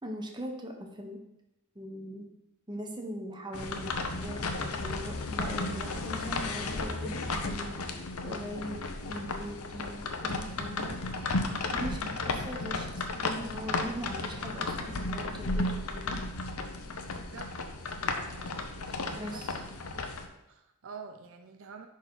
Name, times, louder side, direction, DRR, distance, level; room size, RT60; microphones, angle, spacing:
voice 1, 0.0-1.2 1.7-2.3 2.7-10.9 11.7-16.2 18.9-19.6, equal, 20° right, 2 dB, 1.0 m, -41 dB
sound 1, 3.5-20.3, left 3 dB, 75° left, 0.8 m, -34 dB
voice 2, 18.3-19.5 19.8-20.0 20.5-21.9, right 5 dB, 60° right, 5 dB, 0.5 m, -48 dB
11.0 x 4.2 x 4.0 m, 0.90 s
head